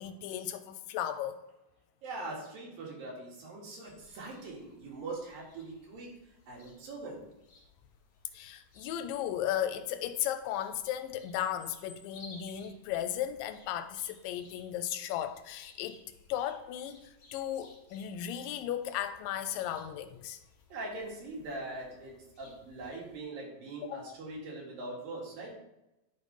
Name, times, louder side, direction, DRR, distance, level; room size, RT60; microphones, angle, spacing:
voice 1, 0.0-1.4 8.3-16.0 16.3-20.4 23.8-24.0, left 11 dB, 85° left, 2.3 m, -35 dB
voice 2, 2.0-6.1 6.5-7.2 20.7-25.5, right 2 dB, 90° right, 3.9 m, -42 dB
sound 1, 3.8-23.2, left 3 dB, 45° left, 1.6 m, -59 dB
10.5 x 4.0 x 5.3 m
omnidirectional pair, 3.9 m